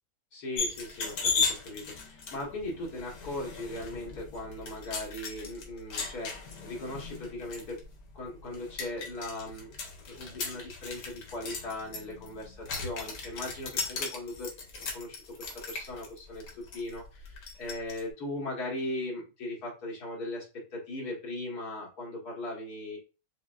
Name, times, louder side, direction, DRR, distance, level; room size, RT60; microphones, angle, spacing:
voice 1, 0.3-7.8 8.1-9.7 10.0-14.5 14.9-20.5 20.7-23.0, left 1 dB, 65° left, -2 dB, 1.8 m, -38 dB
sound 1, 0.6-18.0, left 5 dB, 85° left, 1.5 m, -37 dB
5.8 x 2.1 x 2.4 m, 0.31 s
omnidirectional pair, 1.8 m